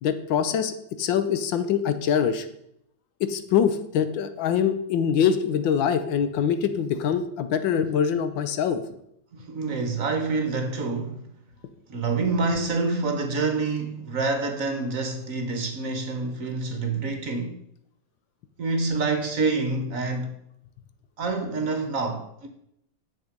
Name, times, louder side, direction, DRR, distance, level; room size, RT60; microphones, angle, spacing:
voice 1, 0.0-2.5 3.2-8.8, left 8 dB, 80° left, 1.5 m, -24 dB
voice 2, 9.3-11.3 11.9-17.5 18.6-20.3 21.2-22.5, right 3 dB, 50° right, 1.3 m, -27 dB
10.0 x 6.5 x 5.1 m
omnidirectional pair, 2.1 m